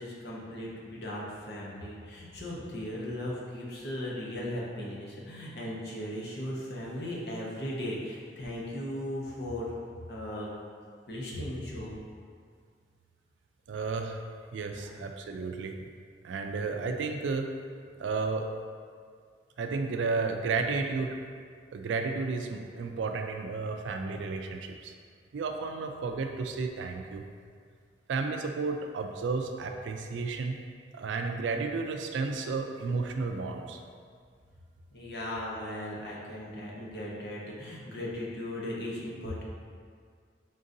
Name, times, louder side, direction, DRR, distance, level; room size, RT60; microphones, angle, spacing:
voice 1, 0.0-9.7 10.1-10.5 11.1-12.0 14.7-14.9 34.9-39.4, left 1 dB, 60° left, -4 dB, 0.8 m, -37 dB
voice 2, 13.7-14.2 14.5-15.9 16.2-17.5 18.0-18.5 19.6-21.2 21.7-24.9 25.3-27.2 28.1-30.6 30.9-33.8, right 4 dB, 80° right, 4 dB, 0.4 m, -32 dB
3.8 x 3.7 x 2.6 m, 2.1 s
head